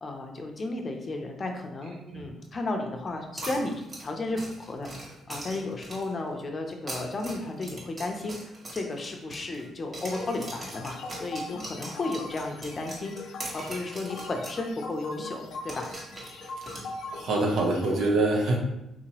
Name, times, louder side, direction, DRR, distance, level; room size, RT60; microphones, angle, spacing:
voice 1, 0.0-3.7 4.0-15.9, left 2 dB, 35° left, 3 dB, 0.6 m, -34 dB
sound 1, 3.4-6.2 6.7-9.7 9.9-14.6 14.9-15.0 15.7-17.3, right 1 dB, 35° right, 1.4 m, -41 dB
sound 2, 10.1-18.1, left 2 dB, 80° left, 0.7 m, -41 dB
voice 2, 17.1-18.6, right 2 dB, 70° right, 0 dB, 1.0 m, -25 dB
4.2 x 2.9 x 2.9 m, 0.88 s
cardioid pair, 90°, 0 cm